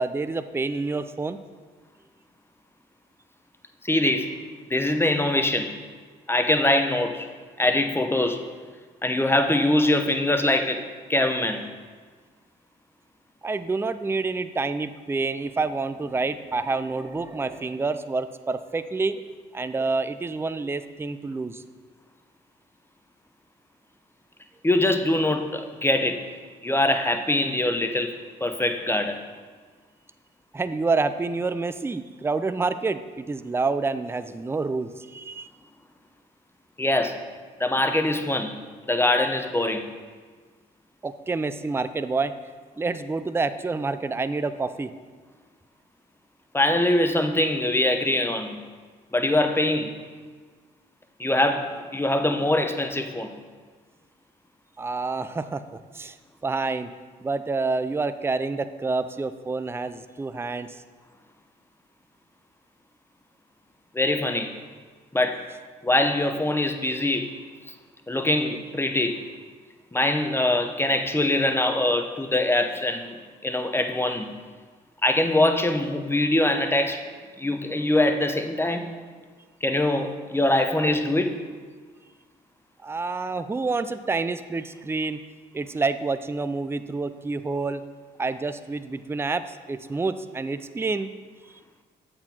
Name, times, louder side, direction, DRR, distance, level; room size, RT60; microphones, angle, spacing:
voice 1, 0.0-1.4 13.4-19.2 19.5-21.6 30.5-35.5 41.0-42.3 42.8-44.9 54.8-55.6 55.9-56.2 56.4-57.0 57.2-60.7 82.8-85.2 85.5-87.8 88.2-91.1, right 3 dB, 10° right, 12 dB, 0.4 m, -28 dB
voice 2, 3.8-4.4 4.7-5.8 6.3-7.3 7.6-8.4 9.0-10.8 11.1-11.7 24.6-26.2 26.6-28.1 28.4-29.2 36.8-37.2 37.6-38.6 38.9-39.9 46.5-48.6 49.1-49.9 51.2-53.3 63.9-64.6 65.1-65.4 65.8-67.3 68.1-69.2 69.9-73.2 73.4-74.3 75.0-77.0 77.4-78.9 79.6-81.4 83.3-83.5, left 1 dB, 10° left, 6 dB, 0.8 m, -23 dB
7.6 x 4.4 x 4.3 m, 1.5 s
supercardioid pair, 50°, 20 cm